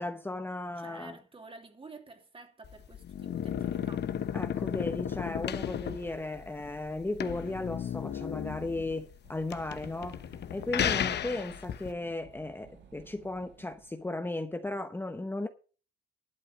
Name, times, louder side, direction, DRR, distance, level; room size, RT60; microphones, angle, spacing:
voice 1, 0.0-1.2 4.3-10.2 10.5-15.5, left 2 dB, 10° left, 0.9 m, -36 dB
voice 2, 0.8-4.1, right 3 dB, 25° right, 2.9 m, -50 dB
sound 1, 2.6-11.9, left 9 dB, 60° left, 1.0 m, -34 dB
sound 2, 9.2-14.2, right 7 dB, 65° right, 2.0 m, -57 dB
12.0 x 7.7 x 6.1 m
cardioid pair, 90°, 20 cm